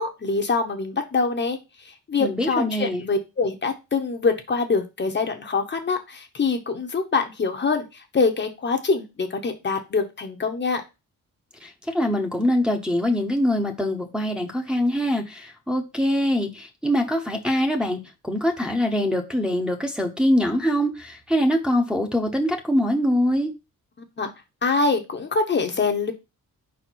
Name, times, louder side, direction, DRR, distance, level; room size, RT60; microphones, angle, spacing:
voice 1, 0.0-1.6 1.8-10.8 24.2-24.3 24.6-26.1, left 4 dB, 35° left, 4 dB, 0.9 m, -24 dB
voice 2, 2.2-3.0 11.6-18.0 18.2-23.5, equal, 5° right, 0 dB, 0.9 m, -23 dB
5.0 x 4.2 x 4.5 m, 0.26 s
cardioid pair, 130°, 33 cm